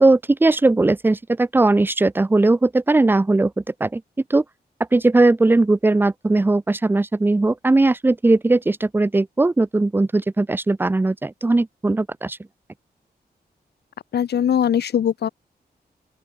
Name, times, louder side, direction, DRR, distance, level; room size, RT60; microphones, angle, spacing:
voice 1, 0.0-4.0 4.3-4.4 4.9-12.4, right 2 dB, 10° right, 0.5 m, -18 dB
voice 2, 14.1-15.3, left 9 dB, 85° left, 1.0 m, -20 dB
open air
wide cardioid pair, 175°, 17 cm